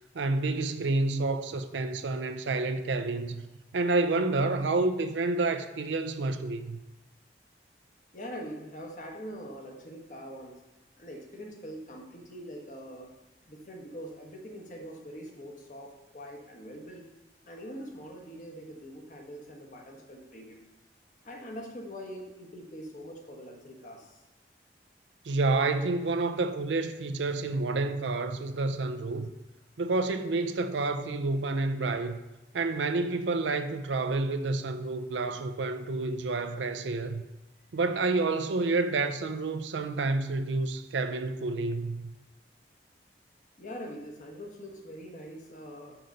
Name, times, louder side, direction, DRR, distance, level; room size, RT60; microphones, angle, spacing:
voice 1, 0.1-3.4 3.7-6.8 25.2-29.3 29.8-32.2 32.5-37.2 37.7-42.0, right 3 dB, 85° right, 0.5 m, -29 dB
voice 2, 8.1-10.6 11.0-13.1 13.5-17.0 17.5-20.6 21.2-24.2 43.6-46.0, equal, 45° left, 1.2 m, -43 dB
6.1 x 5.2 x 6.4 m
head